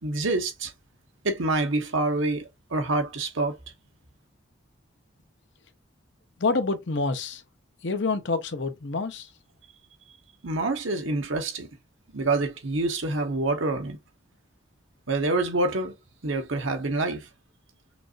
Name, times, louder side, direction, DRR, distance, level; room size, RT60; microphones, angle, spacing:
voice 1, 0.0-0.7 1.2-3.6 10.4-11.7 12.1-14.0 15.1-15.9 16.2-17.3, right 2 dB, 75° right, 1.3 m, -26 dB
voice 2, 6.4-7.4 7.8-9.3, left 3 dB, 65° left, 0.8 m, -27 dB
5.9 x 2.5 x 2.5 m
head